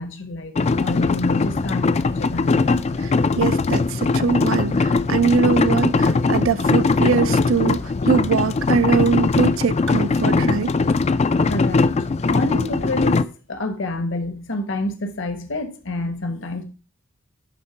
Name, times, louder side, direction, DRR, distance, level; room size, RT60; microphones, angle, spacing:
voice 1, 0.0-2.6 7.2-7.3 11.5-11.9 12.3-16.6, left 2 dB, 65° left, 1.2 m, -28 dB
sound 1, 0.6-13.2, left 3 dB, 35° left, 0.4 m, -20 dB
voice 2, 3.0-10.7, right 5 dB, 75° right, 0.5 m, -22 dB
11.0 x 3.8 x 5.6 m
head